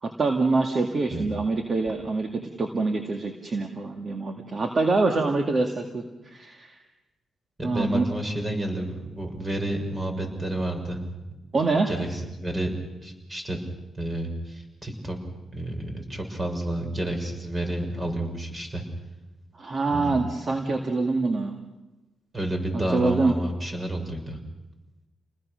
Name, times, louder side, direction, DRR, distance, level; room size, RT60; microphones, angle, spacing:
voice 1, 0.0-6.8 7.6-8.1 11.5-11.9 19.6-21.6 22.9-23.3, right 3 dB, 45° right, 3 dB, 2.1 m, -25 dB
voice 2, 7.6-11.1 11.9-12.7 13.0-13.6 14.0-15.2 15.5-18.8 19.8-20.1 22.3-24.4, right 1 dB, 25° right, 3 dB, 6.2 m, -30 dB
29.0 x 20.0 x 6.5 m, 1.1 s
cardioid pair, 85°, 0 cm